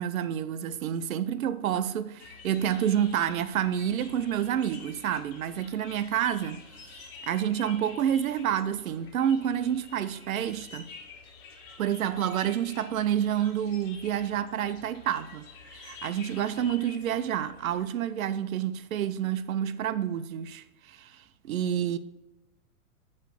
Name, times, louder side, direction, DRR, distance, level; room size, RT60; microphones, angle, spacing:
voice 1, 0.0-10.9 11.8-22.0, right 10 dB, 70° right, 0.6 m, -29 dB
sound 1, 2.2-17.9, left 4 dB, 45° left, 1.7 m, -49 dB
8.8 x 3.2 x 6.5 m
figure-of-eight pair, 105°, 43 cm